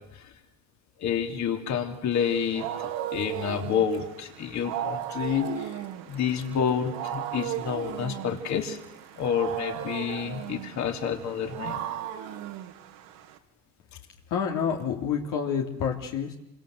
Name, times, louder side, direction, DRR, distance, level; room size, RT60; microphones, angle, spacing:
voice 1, 1.0-5.8 6.1-8.8 9.2-11.8, left 7 dB, 55° left, 5 dB, 3.5 m, -29 dB
Wild animals, 2.2-13.4, right 11 dB, 90° right, 2.8 m, -36 dB
voice 2, 14.3-16.4, left 7 dB, 75° left, 1 dB, 3.3 m, -28 dB
27.0 x 25.0 x 8.0 m, 0.88 s
cardioid pair, 100°, 33 cm